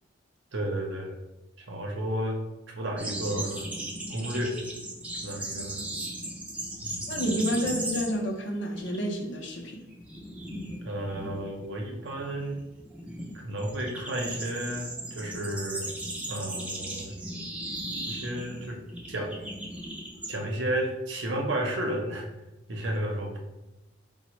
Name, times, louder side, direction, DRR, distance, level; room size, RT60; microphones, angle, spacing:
voice 1, 0.5-1.2 1.7-2.4 2.7-3.6 4.1-4.6 5.2-5.8 6.8-7.2 7.6-7.7 10.8-12.6 13.3-15.9 16.3-17.1 18.1-18.8 19.1-19.3 20.3-22.3 22.7-23.4, right 1 dB, 70° right, 0 dB, 0.7 m, -32 dB
sound 1, 3.0-8.4 8.6-9.0 9.3-20.3, right 1 dB, 5° right, 0.4 m, -37 dB
voice 2, 7.1-9.8, equal, 65° left, 2 dB, 0.5 m, -30 dB
4.1 x 2.1 x 3.0 m, 1.0 s
head